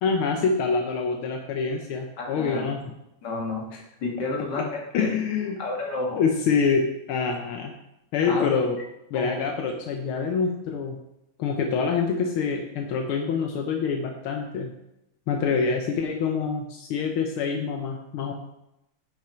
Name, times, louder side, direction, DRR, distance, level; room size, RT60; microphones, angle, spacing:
voice 1, 0.0-2.9 4.9-5.6 6.2-7.8 8.1-8.8 9.1-11.0 11.4-14.7 15.3-18.3, left 5 dB, 80° left, 3 dB, 1.7 m, -26 dB
voice 2, 2.2-2.6 3.2-3.6 4.0-5.2 5.6-6.2 8.3-8.5 9.1-9.4 15.5-15.6, left 3 dB, 55° left, 0 dB, 2.3 m, -30 dB
10.0 x 5.8 x 4.4 m, 0.86 s
omnidirectional pair, 2.3 m